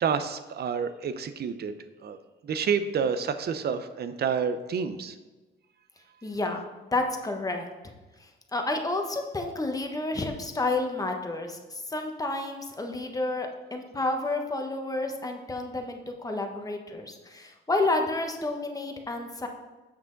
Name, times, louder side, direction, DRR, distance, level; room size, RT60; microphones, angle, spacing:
voice 1, 0.0-1.7 2.0-2.2 2.4-5.1, right 6 dB, 55° right, 11 dB, 0.7 m, -29 dB
voice 2, 6.2-7.9 8.2-19.5, left 2 dB, 20° left, 3 dB, 1.2 m, -30 dB
7.6 x 6.1 x 3.9 m, 1.2 s
cardioid pair, 90°, 20 cm